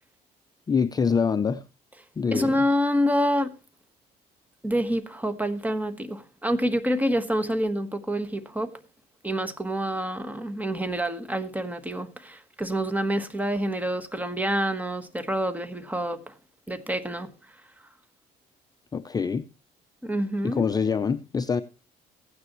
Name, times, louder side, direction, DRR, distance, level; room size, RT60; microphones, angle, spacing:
voice 1, 0.7-1.6 2.2-2.5 18.9-19.5 20.4-21.6, left 5 dB, 25° left, 0.5 m, -25 dB
voice 2, 2.3-3.6 4.6-8.8 9.2-16.3 16.7-17.6 20.0-20.7, equal, 10° right, 1.4 m, -27 dB
15.0 x 9.6 x 3.1 m
cardioid pair, 110°, 17 cm